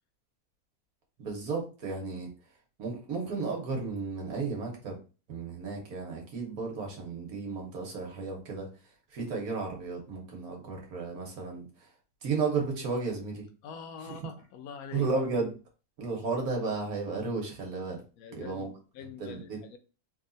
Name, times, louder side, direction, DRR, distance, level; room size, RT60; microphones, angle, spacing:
voice 1, 1.2-2.3 2.8-5.0 5.3-8.7 9.1-11.7 12.2-13.5 14.9-15.5 16.0-18.0 18.3-18.7 19.2-19.6, right 4 dB, 80° right, 1.6 m, -33 dB
voice 2, 13.6-15.1 18.2-19.8, left 6 dB, 80° left, 1.0 m, -44 dB
3.5 x 2.4 x 3.9 m
omnidirectional pair, 1.5 m